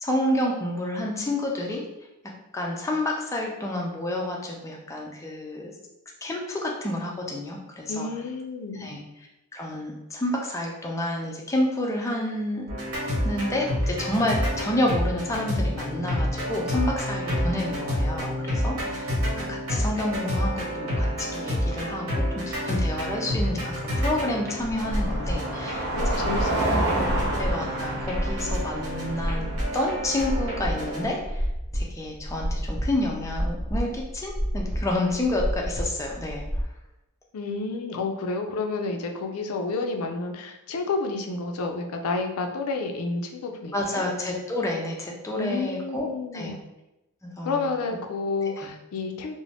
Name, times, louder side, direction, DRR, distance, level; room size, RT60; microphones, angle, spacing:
voice 1, 0.0-1.8 2.5-5.7 6.2-8.1 8.7-9.0 9.5-12.7 13.2-19.1 19.4-26.3 27.4-29.5 29.7-31.5 31.7-36.7 43.7-46.6 47.2-47.7 48.6-48.7, left 1 dB, 15° left, -1 dB, 0.4 m, -29 dB
voice 2, 7.9-8.9 25.9-27.3 37.3-44.0 45.4-46.5 47.4-49.4, left 3 dB, 80° left, 4 dB, 0.4 m, -30 dB
sound 1, 12.7-31.0, equal, 70° right, 1.1 m, -29 dB
Car passing by, 22.6-30.8, right 1 dB, 45° right, 0.5 m, -31 dB
sound 2, 24.7-36.6, equal, 10° right, 0.8 m, -30 dB
2.5 x 2.0 x 3.2 m, 0.95 s
head